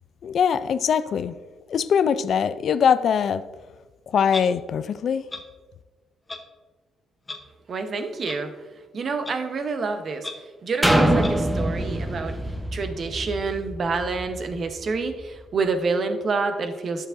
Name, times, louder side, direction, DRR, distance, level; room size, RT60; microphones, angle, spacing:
voice 1, 0.2-1.3 1.7-3.4 4.1-5.2, left 7 dB, 60° left, 0.4 m, -22 dB
Clock, 4.3-4.5 5.3-5.4 6.3-6.4 7.3-7.4 8.3-8.4 9.2-9.3 10.2-10.3 11.2-11.3, left 3 dB, 25° left, 0.9 m, -33 dB
voice 2, 7.7-8.6 8.9-10.3 10.6-12.4 12.7-17.1, right 4 dB, 50° right, 0.9 m, -28 dB
sound 1, 10.8-14.6 15.1-15.2, right 1 dB, 10° right, 0.7 m, -24 dB
11.0 x 6.7 x 2.6 m
cardioid pair, 90°, 0 cm